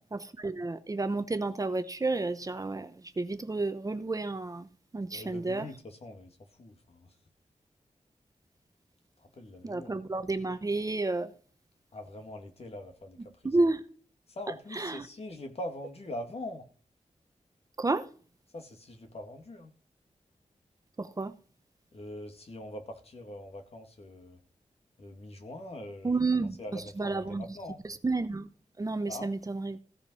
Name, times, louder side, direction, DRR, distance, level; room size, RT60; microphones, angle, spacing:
voice 1, 0.1-2.9 3.2-4.7 4.9-5.7 9.6-11.3 13.4-13.8 14.7-15.1 17.8-18.1 21.0-21.3 26.0-27.5 27.8-28.5 28.8-29.8, right 3 dB, 30° right, 0.8 m, -31 dB
voice 2, 5.1-7.1 9.2-10.0 11.9-13.3 14.3-16.7 18.5-19.7 21.9-24.4 25.0-27.8 29.1-29.3, left 1 dB, 55° left, 2.2 m, -43 dB
15.5 x 5.6 x 5.6 m
wide cardioid pair, 145°, 13 cm